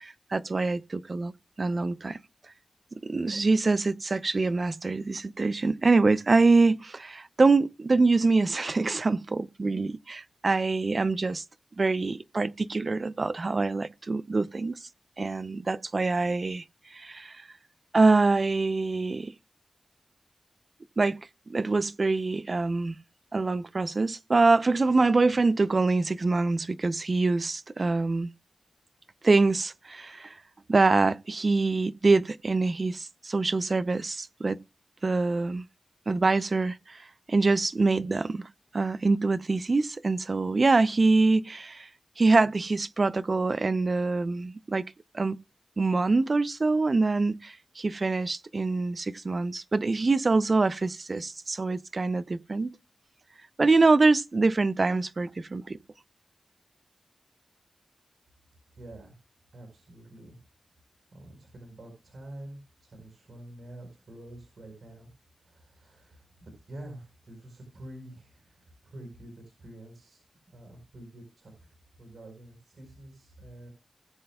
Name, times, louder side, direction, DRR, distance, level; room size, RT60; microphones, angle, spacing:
voice 1, 0.0-1.3 1.6-2.2 3.0-11.4 11.8-14.8 15.2-16.6 16.9-17.4 17.9-19.3 21.0-23.0 23.3-28.3 29.2-30.3 30.7-34.6 35.0-35.6 36.1-37.0 37.3-38.5 38.7-41.9 42.2-44.8 45.1-45.4 45.8-52.7 53.6-55.8, right 3 dB, 50° right, 0.6 m, -25 dB
voice 2, 58.8-59.2 59.5-60.4 61.1-65.1 65.4-71.7 72.0-73.7, right 1 dB, 65° right, 4.6 m, -47 dB
19.5 x 7.6 x 2.3 m
cardioid pair, 60°, 0 cm